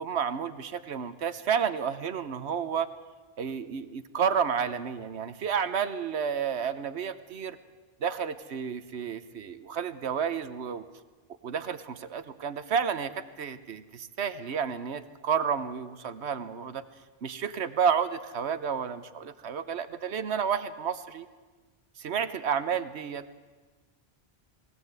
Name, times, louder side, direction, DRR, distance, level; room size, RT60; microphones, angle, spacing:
voice 1, 0.0-2.9 3.4-7.6 8.0-10.9 11.4-16.8 17.2-21.3 22.0-23.2, right 7 dB, 85° right, 12 dB, 1.2 m, -31 dB
20.5 x 18.0 x 8.1 m, 1.3 s
omnidirectional pair, 1.1 m